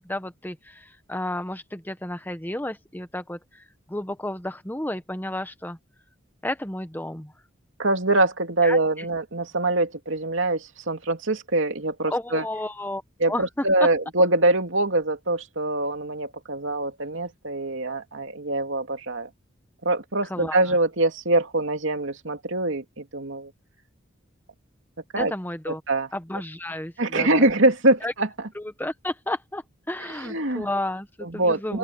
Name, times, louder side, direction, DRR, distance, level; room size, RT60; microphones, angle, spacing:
voice 1, 0.0-3.4 3.9-5.8 6.4-7.3 8.6-8.8 12.1-13.0 13.3-13.4 20.3-20.6 25.2-25.8 26.1-27.5 28.0-28.1 28.5-31.8, left 1 dB, 10° left, 1.2 m, -32 dB
voice 2, 7.8-12.4 13.2-19.3 19.8-23.5 25.1-25.3 25.7-26.1 27.0-28.5 30.1-30.7 31.2-31.8, right 2 dB, 70° right, 2.7 m, -24 dB
open air
head